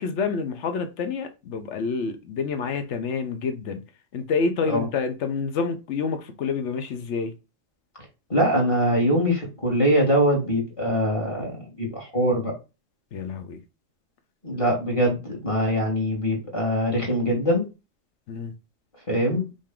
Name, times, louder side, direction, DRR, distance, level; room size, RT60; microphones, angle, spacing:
voice 1, 0.0-3.8 4.1-7.3 13.1-13.6 18.3-18.5, left 5 dB, 70° left, 1.1 m, -28 dB
voice 2, 8.3-12.5 14.4-17.7 19.1-19.4, equal, 25° left, 1.7 m, -23 dB
5.2 x 2.7 x 3.7 m
omnidirectional pair, 1.3 m